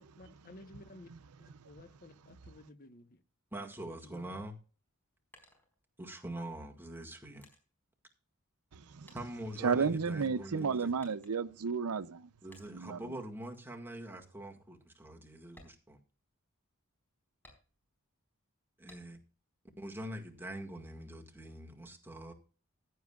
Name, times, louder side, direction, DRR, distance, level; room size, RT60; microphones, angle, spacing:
voice 1, 0.0-1.1 1.4-3.2 3.9-4.4, left 2 dB, 40° left, 1.1 m, -54 dB
voice 2, 3.5-4.5 6.0-7.5 9.1-10.9 12.4-16.0 18.8-19.2 19.8-22.3, right 1 dB, 10° right, 1.9 m, -44 dB
sound 1, 5.0-6.3 6.9-8.8 9.1-10.2 11.0-11.7 12.5-13.0 13.4-13.7 14.1-14.2 14.7-14.8 15.4-16.7 17.4-18.1 18.9-19.4 19.8-20.7, left 1 dB, 10° left, 4.4 m, -63 dB
voice 3, 8.7-9.1 9.6-12.3 12.7-13.2, right 5 dB, 85° right, 0.6 m, -33 dB
15.5 x 10.5 x 2.4 m
head